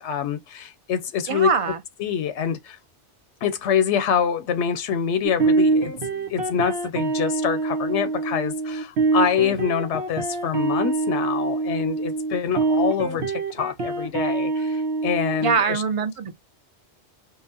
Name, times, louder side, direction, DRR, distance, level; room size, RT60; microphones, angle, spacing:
voice 1, 0.0-1.5 2.0-2.8 3.4-15.8, left 8 dB, 85° left, 0.9 m, -26 dB
voice 2, 1.3-1.8 15.4-16.3, right 6 dB, 45° right, 0.5 m, -23 dB
sound 1, 5.2-15.5, right 3 dB, 70° right, 1.2 m, -25 dB
5.5 x 2.1 x 2.7 m
omnidirectional pair, 1.1 m